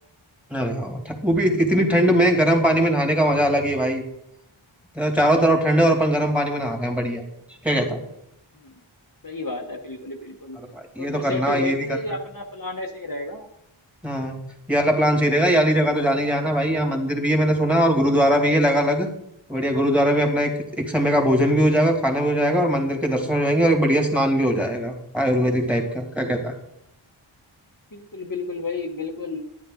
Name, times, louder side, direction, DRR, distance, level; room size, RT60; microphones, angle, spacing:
voice 1, 0.5-4.0 5.0-7.2 7.6-8.0 10.7-11.8 14.0-14.4 14.7-19.1 19.5-26.5, equal, 5° right, 2 dB, 2.3 m, -20 dB
voice 2, 9.2-10.6 11.0-13.5 27.9-29.4, left 2 dB, 40° left, 1 dB, 1.1 m, -31 dB
11.5 x 10.0 x 3.8 m, 0.77 s
wide cardioid pair, 45°, 50 cm